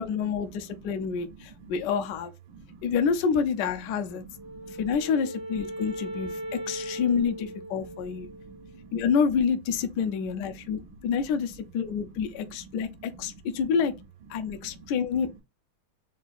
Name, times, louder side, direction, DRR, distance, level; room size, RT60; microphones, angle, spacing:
voice 1, 0.0-2.3 2.8-4.2 4.7-8.3 8.9-13.9 14.3-15.4, left 6 dB, 75° left, 1.0 m, -28 dB
voice 2, 0.7-1.7 2.5-2.9 4.2-4.8 6.1-6.5 7.8-9.0 10.8-11.1 12.4-12.6 13.1-13.4 14.4-14.9, right 4 dB, 75° right, 1.3 m, -49 dB
Wind instrument woodwind instrument, 4.3-8.8, right 1 dB, 35° right, 0.4 m, -38 dB
3.7 x 2.3 x 4.1 m
omnidirectional pair, 2.4 m